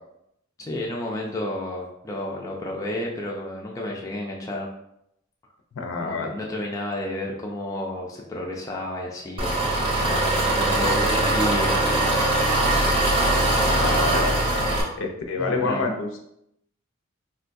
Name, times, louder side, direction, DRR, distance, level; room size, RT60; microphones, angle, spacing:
voice 1, 0.6-4.7 6.0-12.3 15.4-15.9, left 1 dB, 15° left, -2 dB, 0.3 m, -31 dB
voice 2, 5.7-6.3 13.6-14.4 15.0-16.2, left 3 dB, 70° left, 3 dB, 0.5 m, -27 dB
Engine, 9.4-14.8, right 1 dB, 25° right, 0.7 m, -21 dB
3.7 x 2.3 x 2.5 m, 0.78 s
head